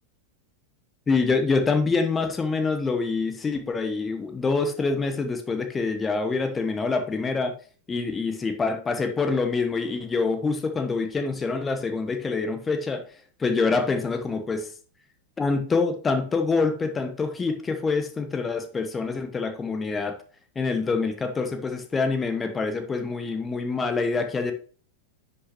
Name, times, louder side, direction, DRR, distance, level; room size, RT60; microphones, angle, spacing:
voice 1, 1.1-7.5 7.9-13.0 13.4-14.7 15.4-20.2 20.5-24.5, left 4 dB, 15° left, 7 dB, 1.2 m, -26 dB
9.9 x 5.6 x 3.0 m, 0.40 s
figure-of-eight pair, 90°, 0 cm